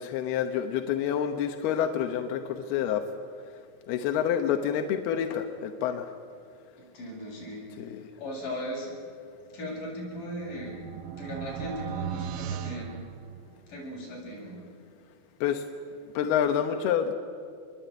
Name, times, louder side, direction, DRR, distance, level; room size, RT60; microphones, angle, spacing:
voice 1, 0.0-3.1 3.9-6.1 7.8-8.1 15.4-15.6 16.1-17.1, left 9 dB, 70° left, 5 dB, 2.5 m, -28 dB
voice 2, 6.8-7.8 8.2-8.9 9.5-13.1 13.7-14.6, equal, 40° left, -3 dB, 9.4 m, -38 dB
sound 1, 9.9-13.8, right 10 dB, 80° right, 3.3 m, -38 dB
27.5 x 22.0 x 9.3 m, 2.3 s
omnidirectional pair, 5.6 m